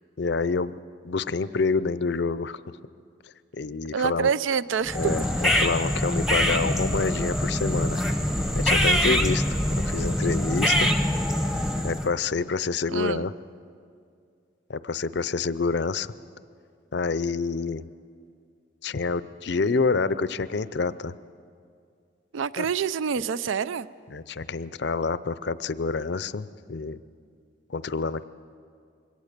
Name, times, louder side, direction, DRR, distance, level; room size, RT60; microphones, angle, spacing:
voice 1, 0.2-0.8 1.0-2.6 3.5-4.3 5.0-8.0 8.6-10.9 11.8-13.3 14.7-16.1 16.9-17.9 18.8-21.1 22.6-22.7 24.1-27.0 27.7-28.2, left 4 dB, 55° left, 15 dB, 0.5 m, -27 dB
voice 2, 3.9-5.1 12.9-13.3 22.3-23.9, right 7 dB, 75° right, 17 dB, 0.4 m, -26 dB
sound 1, 4.8-12.1, equal, ahead, 0.8 m, -24 dB
22.5 x 17.5 x 6.7 m, 2.3 s
head